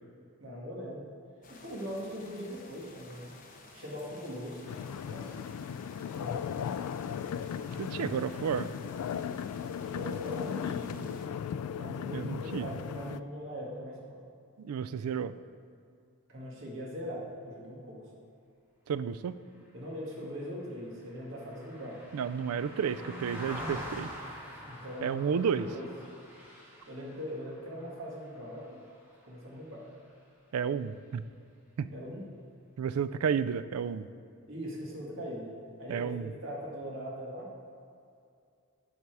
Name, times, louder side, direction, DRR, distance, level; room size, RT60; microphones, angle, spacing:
voice 1, 0.4-1.1 1.5-3.3 3.7-4.8 5.1-5.4 6.1-6.5 9.9-11.1 11.7-14.2 16.3-18.2 19.7-22.0 22.8-23.0 24.6-25.2 25.6-25.9 26.9-28.8 29.2-29.8 31.9-32.2 34.5-35.5 35.8-37.5, equal, 60° right, -4 dB, 1.9 m, -41 dB
sound 1, 1.4-11.3, left 2 dB, 40° left, 0.9 m, -53 dB
sound 2, 4.7-13.2, left 8 dB, 90° left, 0.3 m, -37 dB
voice 2, 7.8-8.7 12.1-12.6 14.6-15.3 18.9-19.3 22.1-24.1 25.0-25.7 30.5-31.2 31.8-31.9 32.8-34.1 35.9-36.3, right 7 dB, 85° right, 14 dB, 0.4 m, -31 dB
Car passing by, 19.9-29.5 29.8-30.1, equal, 10° right, 1.7 m, -46 dB
9.9 x 5.6 x 4.7 m, 2.4 s
head